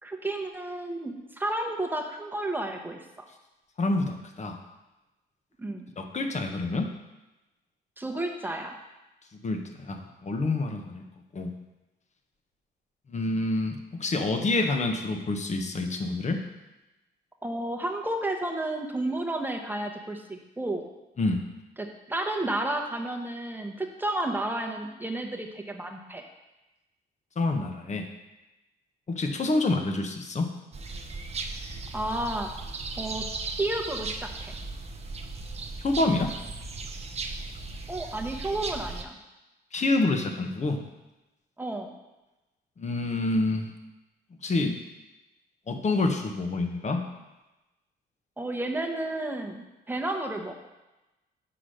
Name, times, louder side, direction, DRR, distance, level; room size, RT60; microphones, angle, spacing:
voice 1, 0.0-3.2 5.6-5.9 8.0-8.7 17.4-20.8 21.8-26.2 31.9-32.5 33.0-33.2 33.6-34.6 37.9-39.2 41.6-41.9 48.4-50.5, right 1 dB, 10° right, 2 dB, 1.0 m, -32 dB
voice 2, 3.8-4.6 6.0-6.9 9.4-11.0 11.3-11.5 13.1-16.4 21.2-21.4 27.4-28.0 29.1-30.5 35.8-36.3 39.7-40.8 42.8-43.7 44.4-44.7 45.7-47.0, left 2 dB, 35° left, 5 dB, 1.0 m, -27 dB
sound 1, 30.7-39.0, right 3 dB, 30° right, 0.8 m, -37 dB
6.0 x 4.9 x 6.4 m, 1.0 s
cardioid pair, 90°, 20 cm